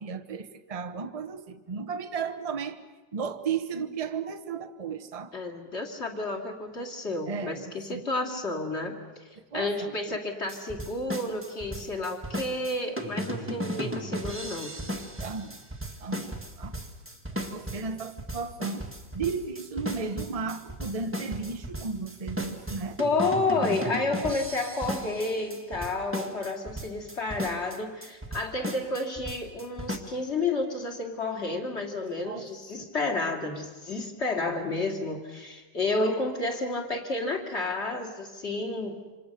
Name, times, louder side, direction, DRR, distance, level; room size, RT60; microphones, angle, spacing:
voice 1, 0.0-2.8 3.1-5.3 7.3-8.1 9.5-10.2 15.2-15.6 16.0-16.8 17.3-18.9 19.1-23.0 24.2-24.4 32.2-32.5 32.8-32.9, right 5 dB, 25° right, 8 dB, 0.9 m, -34 dB
voice 2, 5.3-14.7 23.0-39.0, left 2 dB, 35° left, 2 dB, 3.1 m, -31 dB
sound 1, 10.5-30.0, equal, 5° right, 1.7 m, -35 dB
27.5 x 26.5 x 6.8 m, 1.2 s
omnidirectional pair, 2.1 m